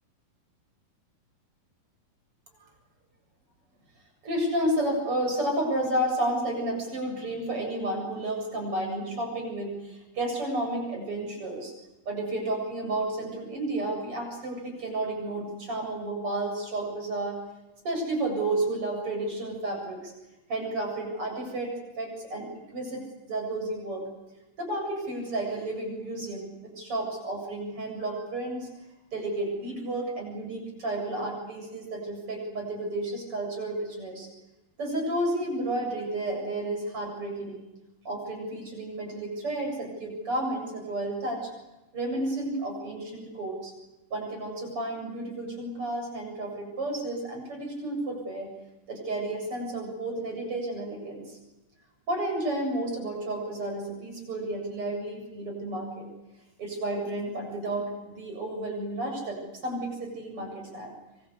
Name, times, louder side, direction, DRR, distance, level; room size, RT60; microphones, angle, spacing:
voice 1, 4.2-11.7 12.1-17.4 17.8-20.1 20.5-24.1 24.6-28.7 29.1-34.3 34.8-37.6 38.0-41.5 41.9-43.7 44.1-48.5 48.9-51.4 52.1-56.1 56.6-60.9, right 1 dB, 40° right, 2 dB, 8.4 m, -31 dB
26.0 x 25.0 x 8.2 m, 1.0 s
omnidirectional pair, 4.0 m